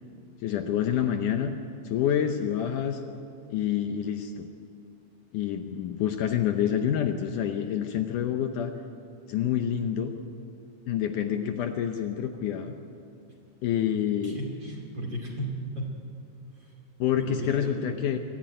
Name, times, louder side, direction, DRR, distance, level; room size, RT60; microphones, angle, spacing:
voice 1, 0.4-1.6 1.8-3.0 3.5-4.5 5.3-8.7 9.3-10.1 10.9-12.7 13.6-14.4 17.0-18.2, left 9 dB, 80° left, 6 dB, 1.8 m, -27 dB
voice 2, 14.2-15.9 16.6-16.7 17.1-17.9, right 1 dB, 30° right, -1 dB, 2.6 m, -35 dB
24.0 x 14.5 x 9.1 m, 2.6 s
omnidirectional pair, 4.7 m